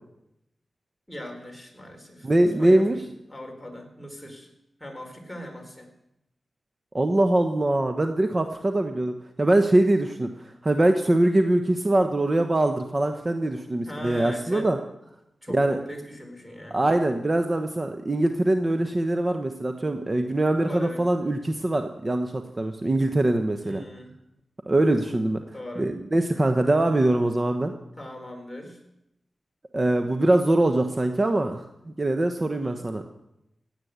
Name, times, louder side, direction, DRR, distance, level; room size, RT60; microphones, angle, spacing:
voice 1, 1.1-4.5 4.8-5.9 13.9-14.7 15.4-16.8 20.6-21.1 23.6-24.1 25.5-25.9 28.0-28.8 32.6-32.8, left 1 dB, 5° left, 2 dB, 4.6 m, -39 dB
voice 2, 2.2-3.0 6.9-10.3 10.6-14.8 15.5-15.8 16.7-23.8 24.7-25.4 25.8-27.7 29.7-31.6 32.0-33.0, right 1 dB, 35° right, 6 dB, 1.2 m, -23 dB
17.0 x 8.9 x 8.2 m, 0.87 s
cardioid pair, 55°, 0 cm